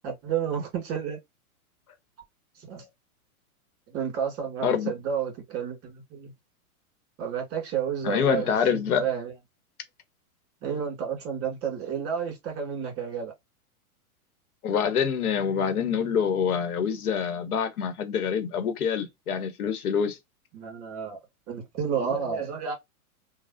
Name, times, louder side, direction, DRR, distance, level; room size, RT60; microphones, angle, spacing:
voice 1, 0.0-1.2 2.6-2.8 3.9-6.3 7.2-9.3 10.6-13.3 20.5-21.2 21.5-22.7, right 7 dB, 30° right, 1.9 m, -31 dB
voice 2, 8.0-9.1 14.6-20.2, left 7 dB, 80° left, 1.2 m, -26 dB
3.3 x 2.3 x 2.6 m
hypercardioid pair, 130°, 44 cm